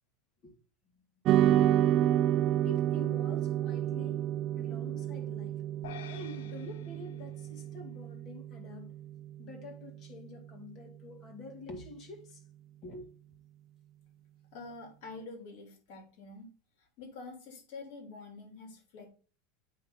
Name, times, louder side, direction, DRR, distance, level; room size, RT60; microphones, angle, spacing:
sound 1, 1.2-9.8, right 12 dB, 40° right, 0.4 m, -30 dB
voice 1, 2.6-5.6 6.1-8.9 9.4-12.4 12.8-13.1, left 2 dB, 40° left, 2.2 m, -47 dB
sound 2, 5.8-8.3, left 9 dB, 85° left, 0.7 m, -50 dB
voice 2, 14.5-16.5 16.8-19.1, left 3 dB, 60° left, 3.5 m, -47 dB
8.4 x 3.2 x 5.8 m
supercardioid pair, 135°, 0 cm